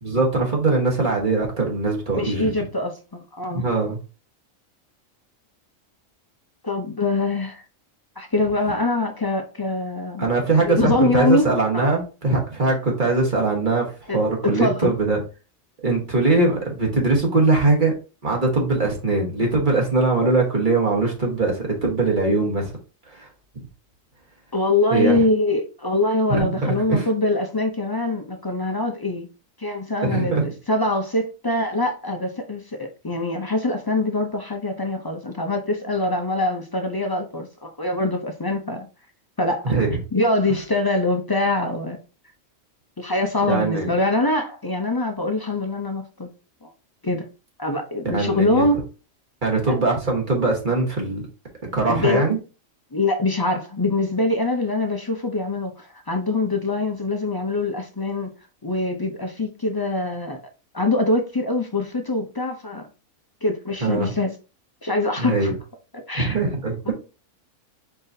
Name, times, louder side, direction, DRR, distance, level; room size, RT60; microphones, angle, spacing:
voice 1, 0.0-2.5 3.5-4.0 10.2-13.9 14.1-15.2 15.8-17.9 18.2-22.7 23.1-23.3 24.9-25.2 26.3-27.1 30.0-30.5 39.6-39.9 43.4-43.9 48.0-48.7 49.4-51.2 51.7-52.4 63.8-64.1 65.2-65.5 66.1-66.9, right 3 dB, 40° right, 1.5 m, -21 dB
voice 2, 2.1-3.7 6.6-7.6 8.2-10.3 10.6-11.5 11.7-11.9 12.6-12.7 14.1-14.9 24.5-29.3 29.6-38.9 39.4-39.7 40.1-42.0 43.0-46.3 46.6-46.7 47.0-47.3 47.6-48.8 49.7-49.8 51.9-52.3 52.9-58.3 58.6-60.4 60.7-62.9 63.4-64.3 64.8-65.5 65.9-66.4 66.9-67.0, left 2 dB, 40° left, 0.3 m, -24 dB
4.9 x 4.0 x 2.7 m
omnidirectional pair, 1.4 m